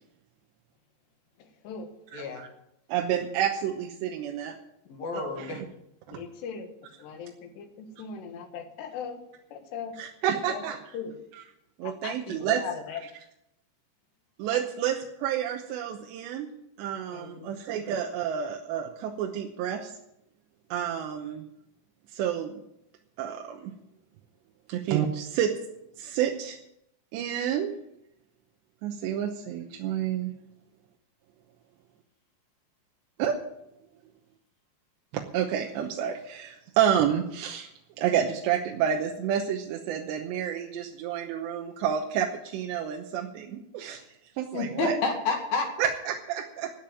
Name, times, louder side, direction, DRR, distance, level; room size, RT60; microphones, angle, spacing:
voice 1, 1.4-1.9 6.1-6.7 7.0-9.2 9.5-9.9 10.5-10.6 10.9-11.1 11.8-13.0 14.5-14.6 17.1-17.5, left 6 dB, 75° left, 6 dB, 3.7 m, -39 dB
voice 2, 2.1-2.5 2.9-4.6 5.4-5.7 6.1-6.2 10.0-10.8 11.8-12.6 14.4-16.5 16.8-19.9 20.7-21.4 22.1-22.6 23.2-23.7 24.7-25.6 26.0-26.6 27.1-27.7 28.8-30.3 33.2-33.4 35.1-37.7 38.0-44.0 44.4-45.0 45.8-46.7, right 9 dB, 85° right, 2 dB, 3.2 m, -29 dB
voice 3, 4.9-5.6 44.5-45.7, left 4 dB, 60° left, 3 dB, 3.7 m, -29 dB
13.5 x 8.8 x 9.0 m, 0.81 s
omnidirectional pair, 5.0 m